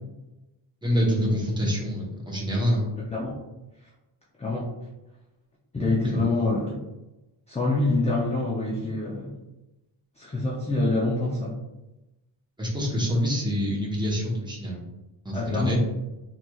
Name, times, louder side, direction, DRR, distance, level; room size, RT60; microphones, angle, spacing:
voice 1, 0.8-2.9 6.1-6.3 12.6-14.8 15.2-15.8, equal, 10° right, -4 dB, 0.8 m, -26 dB
voice 2, 5.7-6.7 7.5-9.3 10.2-11.5 15.3-15.8, left 2 dB, 15° left, -4 dB, 0.3 m, -26 dB
3.1 x 3.0 x 2.2 m, 1.0 s
wide cardioid pair, 140°, 47 cm